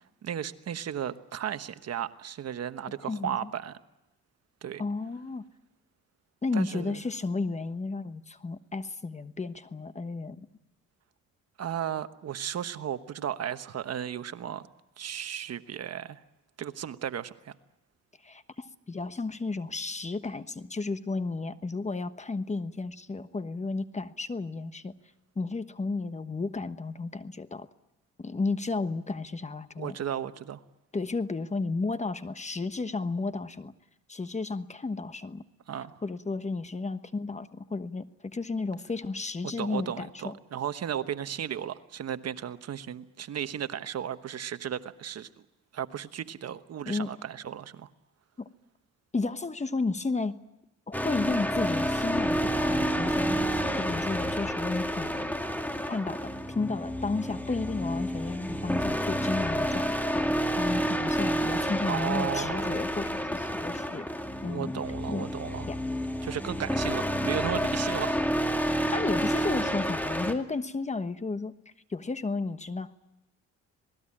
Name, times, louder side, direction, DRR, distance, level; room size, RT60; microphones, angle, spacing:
voice 1, 0.2-3.8 4.6-4.8 6.5-7.0 11.6-14.6 15.0-16.2 16.6-17.5 29.8-30.6 35.7-35.9 39.4-45.3 45.7-47.9 61.7-62.8 64.4-65.7 66.2-68.2, right 9 dB, 55° right, 11 dB, 1.2 m, -35 dB
voice 2, 3.1-3.5 4.8-5.4 6.4-10.4 18.2-24.9 25.4-27.7 28.2-30.0 30.9-33.7 34.1-35.4 36.0-40.3 46.9-47.1 48.4-48.5 49.1-50.3 50.9-55.3 55.9-64.1 64.4-64.7 65.1-65.3 65.6-65.8 68.9-71.5 71.9-72.9, left 3 dB, 25° left, 11 dB, 1.2 m, -33 dB
sound 1, 50.9-70.3, equal, 5° left, 2.4 m, -29 dB
27.0 x 19.5 x 8.7 m, 0.97 s
cardioid pair, 90°, 30 cm